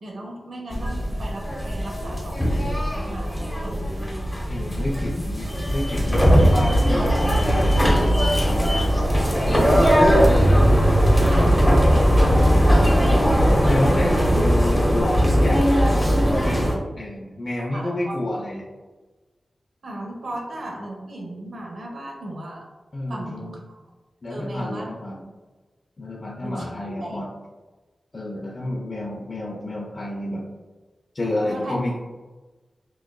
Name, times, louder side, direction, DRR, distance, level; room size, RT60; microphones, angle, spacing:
voice 1, 0.0-3.9 11.3-12.1 12.4-13.0 13.4-14.3 17.7-18.4 19.8-22.6 23.1-23.7 24.3-24.9 26.4-26.7 27.0-27.2 31.4-31.8, right 1 dB, 80° right, -1 dB, 0.9 m, -35 dB
sound 1, 0.7-16.7, equal, 10° left, 0.9 m, -19 dB
voice 2, 4.5-8.2 8.5-9.0 9.5-9.9 11.4-11.5 13.6-16.7 17.0-18.6 22.9-23.5 24.2-25.2 26.0-27.3 28.1-30.4 31.1-32.0, left 1 dB, 40° left, -3 dB, 0.5 m, -29 dB
6.1 x 2.4 x 2.2 m, 1.2 s
wide cardioid pair, 110°, 0 cm